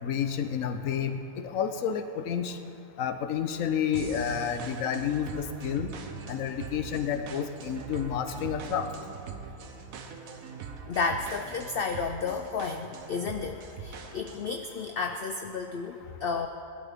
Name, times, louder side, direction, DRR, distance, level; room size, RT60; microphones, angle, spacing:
voice 1, 0.0-1.2 1.4-2.6 3.0-5.9 6.3-8.9, left 8 dB, 70° left, 8 dB, 1.2 m, -30 dB
sound 1, 3.9-14.6, right 6 dB, 80° right, 1.3 m, -42 dB
voice 2, 10.9-16.5, left 4 dB, 55° left, 6 dB, 0.7 m, -32 dB
21.0 x 12.0 x 3.6 m, 2.7 s
omnidirectional pair, 1.4 m